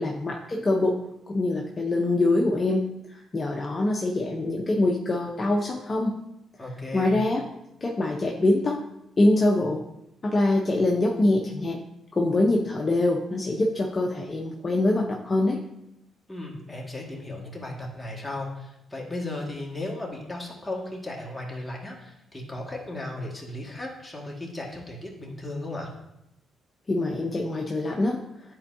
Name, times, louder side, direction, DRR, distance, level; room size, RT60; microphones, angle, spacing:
voice 1, 0.0-6.2 6.9-7.5 7.8-8.8 9.2-9.8 10.2-11.8 12.1-15.6 26.9-28.2, left 2 dB, 30° left, 0 dB, 0.8 m, -24 dB
voice 2, 6.6-7.1 16.3-25.9, left 2 dB, 10° left, -3 dB, 1.9 m, -36 dB
10.5 x 4.5 x 2.7 m, 0.87 s
cardioid pair, 90°, 0 cm